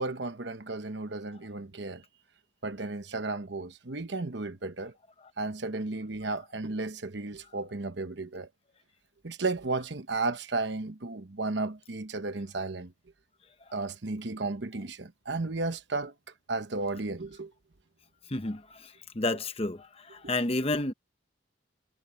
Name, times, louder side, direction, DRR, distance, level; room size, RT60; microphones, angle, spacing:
voice 1, 0.0-2.0 2.6-4.9 5.4-8.5 9.2-12.9 13.7-16.1 16.5-17.5, right 3 dB, 60° right, 1.0 m, -34 dB
voice 2, 18.3-18.8 19.1-20.9, left 2 dB, 30° left, 1.0 m, -30 dB
head